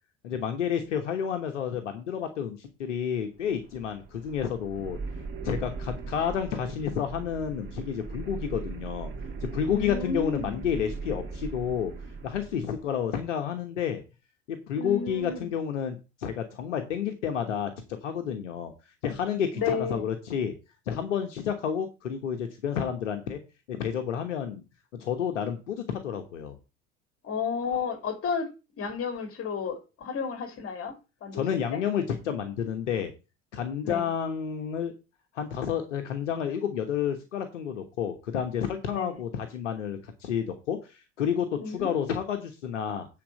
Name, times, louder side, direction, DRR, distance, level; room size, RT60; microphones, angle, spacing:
voice 1, 0.2-5.0 5.4-9.1 9.4-11.9 12.2-14.0 14.5-17.7 18.0-18.7 19.0-20.5 20.9-23.4 23.7-24.6 24.9-26.6 31.3-33.1 33.5-34.9 35.3-43.1, left 8 dB, 70° left, 1.2 m, -30 dB
sound 1, 3.3-12.9, right 4 dB, 30° right, 2.7 m, -39 dB
voice 2, 9.7-10.6 14.7-15.5 19.5-20.1 27.2-28.5 28.8-30.9 31.2-31.8 33.8-34.1 38.9-39.2 41.6-41.9, left 5 dB, 35° left, 2.8 m, -32 dB
8.7 x 4.5 x 7.4 m
figure-of-eight pair, 65°, 37 cm